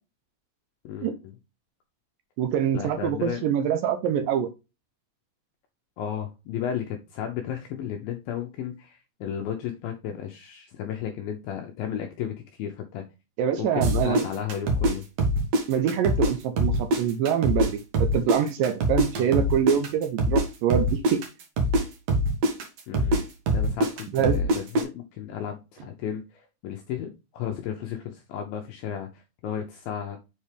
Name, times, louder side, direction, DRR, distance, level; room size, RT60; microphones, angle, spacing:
voice 1, 0.8-1.3 2.7-3.5 6.0-13.0 13.6-15.0 22.9-30.2, left 9 dB, 75° left, 2.2 m, -34 dB
voice 2, 2.4-4.5 13.4-14.2 15.7-21.2 24.1-24.4, right 8 dB, 80° right, 2.0 m, -25 dB
sound 1, 13.8-16.3 16.6-20.4 20.7-24.8, right 1 dB, 60° right, 1.7 m, -23 dB
7.3 x 4.3 x 3.3 m
omnidirectional pair, 4.9 m